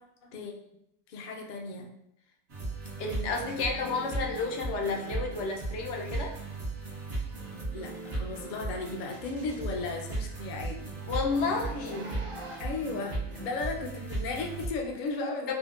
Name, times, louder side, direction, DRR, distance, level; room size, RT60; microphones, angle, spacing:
voice 1, 1.1-1.9 7.7-10.9 12.6-15.5, left 3 dB, 55° left, 2 dB, 0.5 m, -35 dB
sound 1, 2.5-14.7, right 2 dB, 85° right, 1.4 m, -37 dB
voice 2, 3.0-6.4 11.1-12.2 15.5-15.6, left 4 dB, 80° left, 1 dB, 0.9 m, -31 dB
Zipper (clothing), 10.9-12.8 13.6-13.7 14.7-14.8, equal, 35° right, 0.6 m, -46 dB
4.3 x 2.1 x 2.4 m, 0.79 s
omnidirectional pair, 1.2 m